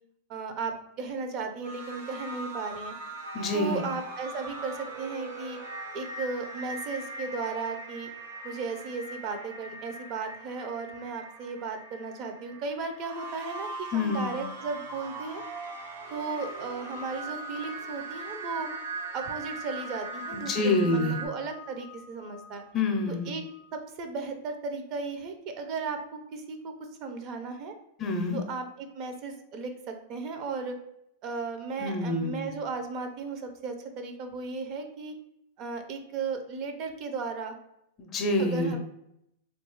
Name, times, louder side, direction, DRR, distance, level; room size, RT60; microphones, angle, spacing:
voice 1, 0.3-2.9 3.5-5.6 5.9-8.1 8.4-15.4 16.1-18.7 19.1-22.6 23.2-23.4 23.7-26.7 27.0-27.7 28.3-30.8 31.2-35.1 35.6-37.5 38.4-38.8, right 4 dB, 40° right, 6 dB, 0.4 m, -35 dB
sound 1, 1.6-21.3, right 3 dB, 85° right, 0.8 m, -40 dB
voice 2, 3.3-3.8 13.9-14.3 20.3-21.2 22.7-23.3 28.0-28.4 31.8-32.5 38.0-38.7, left 2 dB, 30° left, 4 dB, 0.4 m, -27 dB
sound 2, 16.1-23.8, left 7 dB, 90° left, 0.4 m, -46 dB
3.0 x 2.3 x 2.9 m, 0.80 s
supercardioid pair, 135°, 0 cm